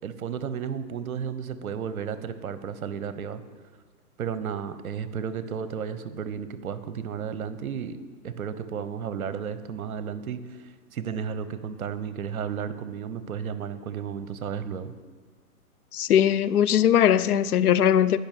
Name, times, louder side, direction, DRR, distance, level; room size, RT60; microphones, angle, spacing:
voice 1, 0.0-3.4 4.2-8.0 8.2-14.9, right 7 dB, 65° right, 0.8 m, -33 dB
voice 2, 15.9-18.2, left 9 dB, 70° left, 0.5 m, -20 dB
10.5 x 5.3 x 5.9 m
hypercardioid pair, 135°, 46 cm